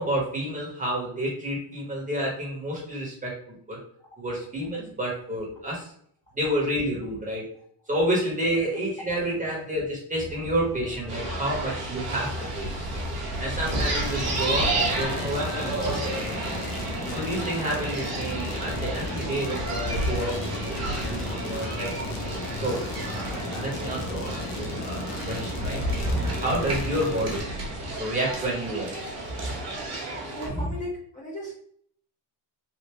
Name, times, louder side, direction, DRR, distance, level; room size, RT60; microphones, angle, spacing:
voice 1, 0.0-3.8 4.2-5.9 6.3-7.4 7.9-12.3 12.5-12.7 13.4-16.7 17.1-21.9 22.6-27.5 28.0-29.1 29.3-29.6 30.4-30.7, right 1 dB, 15° right, -3 dB, 1.3 m, -30 dB
sound 1, 10.1-27.9, left 1 dB, ahead, 0.3 m, -40 dB
sound 2, 11.1-30.5, right 2 dB, 35° right, 1.4 m, -32 dB
sound 3, 13.7-27.4, left 2 dB, 70° left, 1.0 m, -35 dB
voice 2, 30.2-31.5, equal, 15° left, -5 dB, 1.1 m, -36 dB
3.5 x 2.5 x 3.0 m, 0.63 s
cardioid pair, 120°, 45 cm